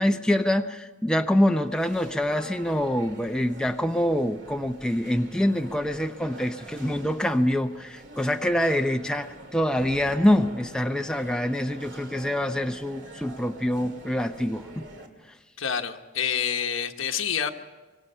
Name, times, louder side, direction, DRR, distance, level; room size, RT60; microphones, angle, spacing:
voice 1, 0.0-14.8, left 1 dB, 5° left, 5 dB, 0.6 m, -25 dB
sound 1, 1.4-15.1, right 1 dB, 60° right, 2.3 m, -45 dB
voice 2, 15.6-17.5, left 8 dB, 85° left, 6 dB, 1.2 m, -27 dB
24.5 x 23.5 x 5.6 m, 1.3 s
head